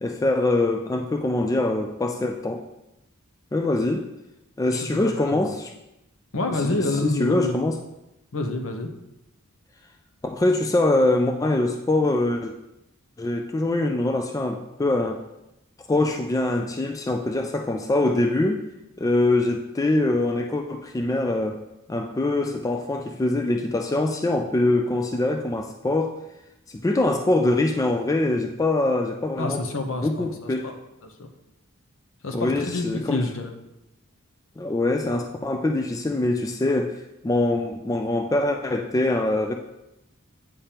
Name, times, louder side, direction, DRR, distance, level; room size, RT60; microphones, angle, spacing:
voice 1, 0.0-2.6 3.5-4.1 4.6-5.7 6.5-7.8 10.3-12.5 13.2-15.2 15.9-18.6 19.0-21.6 21.9-26.1 26.7-29.6 30.0-30.7 32.3-33.3 34.6-37.0 37.2-39.6, left 2 dB, 15° left, 4 dB, 0.3 m, -23 dB
voice 2, 4.8-5.5 6.3-7.6 8.3-8.9 29.4-30.3 30.6-30.7 31.0-31.3 32.2-33.6, left 2 dB, 70° left, 5 dB, 0.8 m, -28 dB
8.6 x 5.1 x 2.9 m, 0.90 s
head